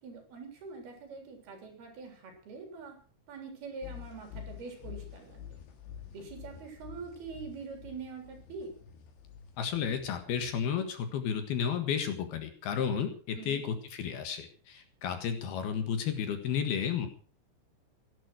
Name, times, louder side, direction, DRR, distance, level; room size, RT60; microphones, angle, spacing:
voice 1, 0.0-3.0 3.3-5.6 6.1-8.7 13.3-13.6, right 4 dB, 60° right, 4 dB, 5.5 m, -44 dB
sound 1, 3.8-11.2, left 8 dB, 80° left, 4.4 m, -48 dB
voice 2, 9.6-17.1, left 7 dB, 65° left, 7 dB, 3.3 m, -32 dB
17.0 x 12.0 x 6.3 m, 0.42 s
omnidirectional pair, 5.2 m